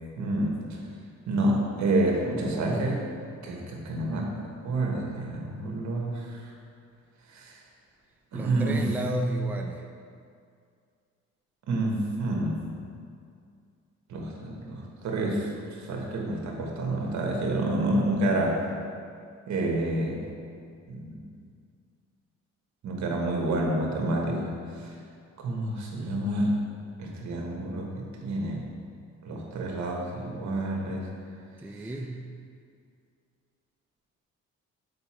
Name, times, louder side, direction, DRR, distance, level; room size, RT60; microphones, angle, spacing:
voice 1, 0.2-0.8 1.3-3.0 3.4-4.3 4.6-6.3 7.3-7.5 8.3-8.8 11.7-12.6 14.1-15.5 15.9-18.6 19.5-20.2 20.9-21.2 22.8-24.5 25.4-26.5 27.0-27.9 28.2-28.6 29.2-31.1, right 1 dB, 70° right, -1 dB, 1.4 m, -28 dB
voice 2, 8.3-9.9 31.6-32.3, right 1 dB, 5° right, 2 dB, 0.5 m, -32 dB
6.8 x 4.9 x 4.3 m, 2.2 s
cardioid pair, 90°, 30 cm